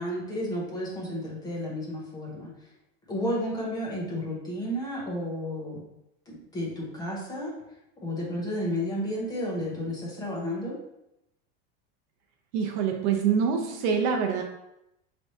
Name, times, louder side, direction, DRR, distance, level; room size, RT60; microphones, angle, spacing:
voice 1, 0.0-2.5 3.1-5.8 6.3-7.5 8.0-10.8, equal, 15° left, -4 dB, 0.8 m, -32 dB
voice 2, 12.5-14.4, right 6 dB, 50° right, 3 dB, 0.6 m, -25 dB
5.8 x 3.4 x 2.7 m, 0.85 s
cardioid pair, 180°, 30 cm